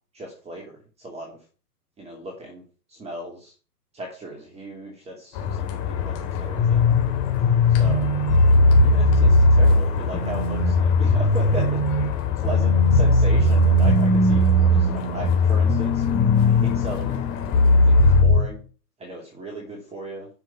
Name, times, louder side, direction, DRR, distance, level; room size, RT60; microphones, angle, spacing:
voice 1, 0.1-0.7 1.0-1.4 2.0-2.6 2.9-3.5 3.9-6.9 7.7-8.1 8.8-11.8 12.4-16.0 16.4-17.2 17.7-17.9 18.2-18.6 19.0-20.3, right 1 dB, 15° right, 0 dB, 2.8 m, -36 dB
sound 1, 5.3-18.2, left 9 dB, 35° left, 3.6 m, -30 dB
sound 2, 6.5-18.4, left 1 dB, 15° left, 4.6 m, -18 dB
10.5 x 6.3 x 5.8 m, 0.37 s
hypercardioid pair, 125°, 48 cm